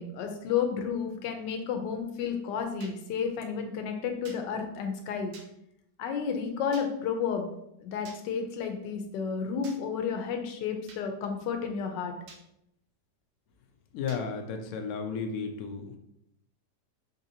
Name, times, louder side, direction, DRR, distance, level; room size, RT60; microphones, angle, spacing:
voice 1, 0.0-5.3 6.0-7.5 7.8-12.1, left 6 dB, 90° left, 5 dB, 1.3 m, -32 dB
sound 1, 2.8-3.0 4.3-4.4 5.3-5.5 6.7-6.9 8.1-8.2 9.6-9.8 10.9-11.0 12.3-12.4 14.1-14.2, right 4 dB, 75° right, 1.2 m, -49 dB
voice 2, 13.9-15.9, left 5 dB, 70° left, 4 dB, 1.0 m, -33 dB
4.9 x 2.6 x 2.7 m, 0.77 s
omnidirectional pair, 1.9 m